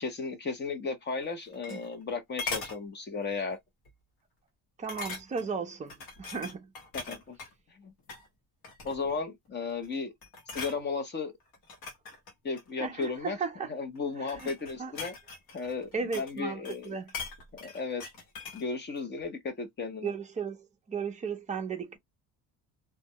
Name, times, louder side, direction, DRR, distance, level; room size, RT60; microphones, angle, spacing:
voice 1, 0.0-3.6 6.9-7.4 7.7-7.9 8.8-10.1 10.5-11.3 12.4-13.4 13.7-15.1 15.5-17.0 17.6-18.0 18.5-20.1, left 4 dB, 25° left, 0.6 m, -35 dB
sound 1, 1.2-2.1 2.4-2.8 3.3-3.5 3.8-3.9 4.9-5.5 5.9-7.5 8.0-8.3 8.6-9.2 9.7-9.9 10.2-10.8 11.5-13.1 13.9-16.4 16.6-18.7 19.0-19.1, left 4 dB, 60° left, 1.0 m, -41 dB
voice 2, 4.8-6.7 12.8-13.7 14.2-14.5 14.8-14.9 15.9-17.1 20.0-22.0, right 5 dB, 20° right, 0.5 m, -35 dB
2.3 x 2.0 x 2.7 m
cardioid pair, 160°, 39 cm